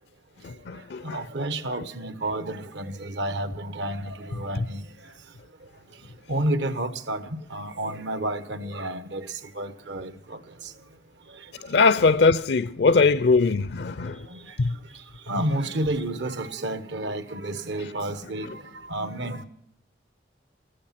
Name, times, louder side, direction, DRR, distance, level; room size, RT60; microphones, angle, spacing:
voice 1, 0.4-1.2 11.6-14.3 14.6-14.7, left 4 dB, 60° left, 0.5 m, -21 dB
voice 2, 1.0-4.8 6.3-9.3 9.6-10.4 14.3-14.4 15.3-18.6 18.9-19.5, right 1 dB, 70° right, 1.1 m, -30 dB
14.5 x 13.0 x 5.8 m
head